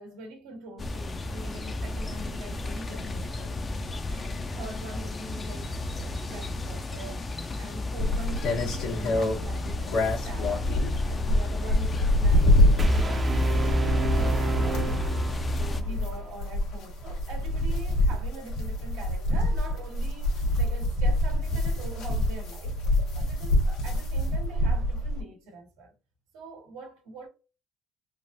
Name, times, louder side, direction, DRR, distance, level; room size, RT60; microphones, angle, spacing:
voice 1, 0.0-3.7 4.1-7.2 7.6-10.7 11.0-15.1 15.6-22.8 23.1-25.9 26.3-27.3, right 2 dB, 90° right, 1.2 m, -43 dB
sound 1, 0.8-15.8, left 2 dB, 30° left, 0.5 m, -33 dB
sound 2, 8.0-25.2, left 1 dB, 80° left, 1.2 m, -26 dB
sound 3, 12.8-15.8, right 1 dB, 25° right, 0.5 m, -27 dB
3.2 x 2.5 x 2.6 m
supercardioid pair, 90°, 0 cm